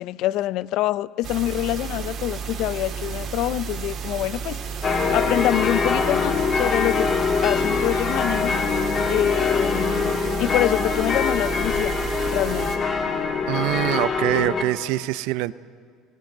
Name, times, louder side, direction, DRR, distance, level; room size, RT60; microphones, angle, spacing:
voice 1, 0.0-4.6 5.1-7.1 7.4-8.6 9.1-12.0 12.3-12.8, left 15 dB, 60° left, 20 dB, 0.4 m, -26 dB
sound 1, 1.2-12.8, right 6 dB, 45° right, 2.4 m, -32 dB
sound 2, 4.8-14.6, left 5 dB, 30° left, 1.6 m, -23 dB
voice 2, 13.4-15.5, right 18 dB, 75° right, 17 dB, 0.5 m, -24 dB
18.5 x 18.0 x 7.9 m, 2.1 s
cardioid pair, 145°, 0 cm